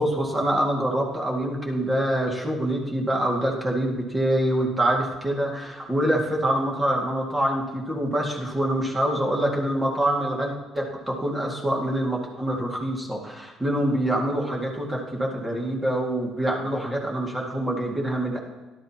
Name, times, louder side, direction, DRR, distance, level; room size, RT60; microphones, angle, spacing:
voice 1, 0.0-18.4, right 1 dB, 10° right, -1 dB, 2.0 m, -25 dB
17.5 x 12.0 x 2.9 m, 1.2 s
cardioid pair, 170°, 0 cm